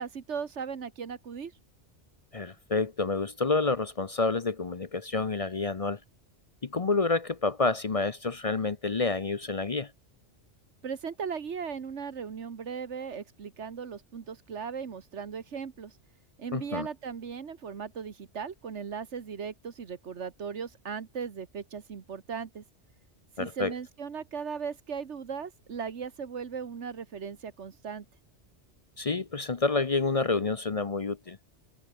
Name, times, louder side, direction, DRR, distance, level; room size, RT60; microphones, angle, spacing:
voice 1, 0.0-1.5 10.8-16.0 16.4-22.6 23.4-28.1, right 6 dB, 85° right, 1.7 m, -37 dB
voice 2, 2.3-6.0 6.6-9.9 16.5-16.9 23.4-23.7 29.0-31.4, left 3 dB, 35° left, 0.7 m, -28 dB
omnidirectional pair, 1.2 m